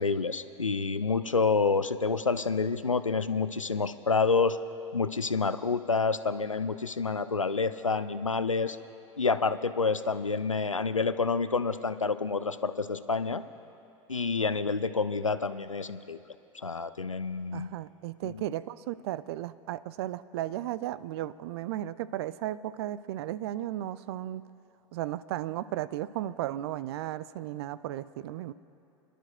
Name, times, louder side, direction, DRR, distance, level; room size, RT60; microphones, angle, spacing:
voice 1, 0.0-4.6 4.9-8.8 9.2-13.4 14.1-16.2 16.5-17.7 18.2-18.3, left 4 dB, 90° left, 12 dB, 0.4 m, -28 dB
voice 2, 17.5-24.4 24.9-28.5, right 13 dB, 55° right, 17 dB, 0.4 m, -35 dB
29.0 x 12.0 x 2.2 m, 2.8 s
figure-of-eight pair, 80°, 16 cm